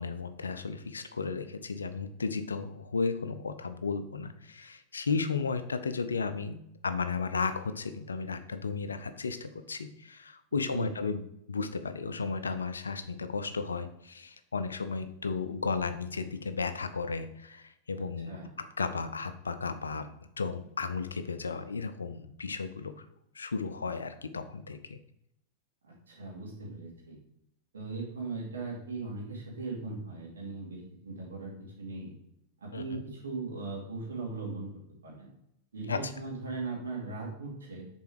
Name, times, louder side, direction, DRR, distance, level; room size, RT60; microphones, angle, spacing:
voice 1, 0.0-11.2 11.5-23.1 23.3-25.0 32.7-33.0 35.9-36.1, left 4 dB, 75° left, 10 dB, 0.5 m, -34 dB
voice 2, 10.5-10.9 17.9-18.5 25.8-27.2 27.7-31.5 31.8-32.2 32.6-34.7 35.0-35.3 35.7-37.8, right 3 dB, 70° right, -3 dB, 2.5 m, -39 dB
6.9 x 4.5 x 4.6 m, 0.80 s
figure-of-eight pair, 90°, 0 cm